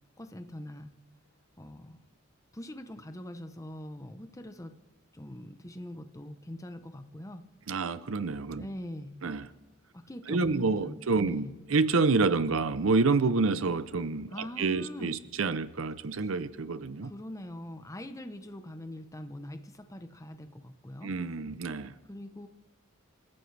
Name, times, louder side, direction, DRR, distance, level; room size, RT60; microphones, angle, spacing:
voice 1, 0.2-0.9 1.6-2.0 2.5-4.7 5.1-7.4 8.6-9.2 9.9-11.0 11.2-11.6 14.3-15.1 17.0-21.1 22.1-22.5, left 1 dB, 15° left, 8 dB, 0.8 m, -42 dB
voice 2, 7.7-8.7 9.2-9.5 10.3-17.1 21.0-21.9, right 4 dB, 75° right, 14 dB, 0.7 m, -28 dB
28.0 x 14.0 x 3.4 m, 1.1 s
head